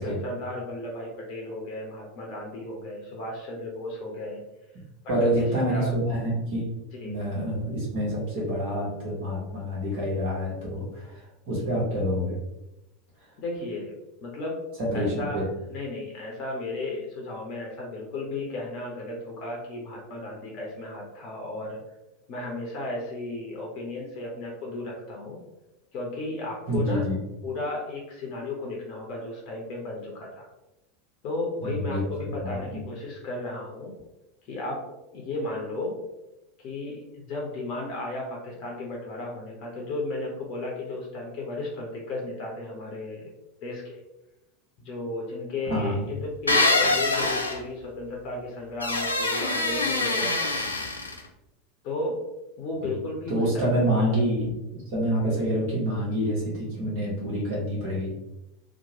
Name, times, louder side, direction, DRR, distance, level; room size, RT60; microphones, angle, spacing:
voice 1, 0.0-4.4 5.0-5.9 7.0-7.2 13.4-14.6 14.9-15.4 15.7-21.8 22.3-25.4 25.9-27.1 27.4-30.5 31.2-33.9 34.5-34.8 35.1-36.0 36.6-43.3 43.6-44.0 44.8-50.6 51.8-52.2 52.6-54.0, left 2 dB, 45° left, -1 dB, 0.6 m, -34 dB
voice 2, 5.1-6.7 7.0-12.4 14.8-15.4 26.7-27.2 31.6-32.8 45.7-46.0 52.8-52.9 53.3-58.1, equal, 55° right, -5 dB, 1.0 m, -27 dB
sound 1, 46.5-47.6 48.8-51.2, left 2 dB, 85° left, 0.3 m, -24 dB
2.8 x 2.1 x 2.8 m, 0.94 s
figure-of-eight pair, 80°, 0 cm